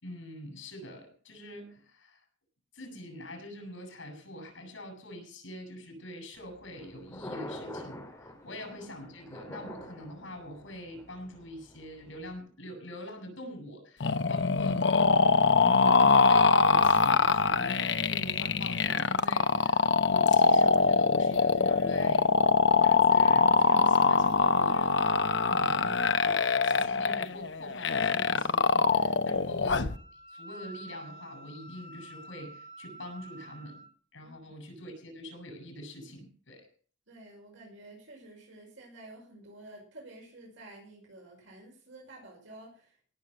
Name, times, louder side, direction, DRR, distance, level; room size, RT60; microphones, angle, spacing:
voice 1, 0.0-2.2 2.7-14.8 15.5-22.3 22.8-25.2 25.5-26.3 26.6-29.9 30.3-33.8 34.1-36.7, left 1 dB, 85° left, 4 dB, 6.7 m, -44 dB
Thunder, 6.3-12.4, left 1 dB, 15° left, 3.2 m, -46 dB
sound 1, 14.0-30.0, left 4 dB, 65° left, 0.8 m, -23 dB
voice 2, 25.3-25.7 29.3-29.4 34.2-34.5 37.1-43.0, right 2 dB, 85° right, -1 dB, 5.7 m, -51 dB
Wind instrument woodwind instrument, 29.9-33.9, right 2 dB, 35° left, 2.8 m, -48 dB
17.5 x 6.7 x 7.9 m, 0.42 s
head